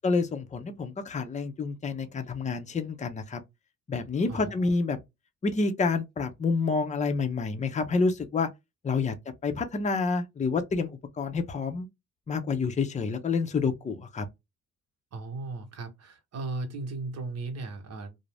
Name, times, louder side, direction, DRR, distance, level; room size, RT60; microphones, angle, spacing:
voice 1, 0.0-3.4 3.9-5.0 5.4-8.5 8.8-9.2 9.4-11.9 12.3-14.2, left 4 dB, 25° left, 0.6 m, -28 dB
voice 2, 15.1-18.2, right 3 dB, 55° right, 0.9 m, -36 dB
2.5 x 2.0 x 3.2 m
cardioid pair, 90°, 30 cm